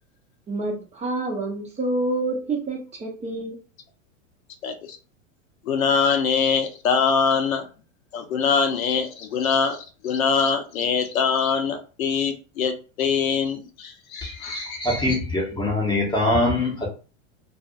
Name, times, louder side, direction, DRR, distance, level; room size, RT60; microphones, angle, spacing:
voice 1, 0.5-3.6, right 2 dB, 15° right, 0.8 m, -27 dB
voice 2, 5.7-7.6 8.1-14.8, left 6 dB, 85° left, 0.8 m, -23 dB
voice 3, 14.2-16.9, left 2 dB, 10° left, 1.1 m, -23 dB
2.5 x 2.4 x 2.3 m
hypercardioid pair, 125°, 40 cm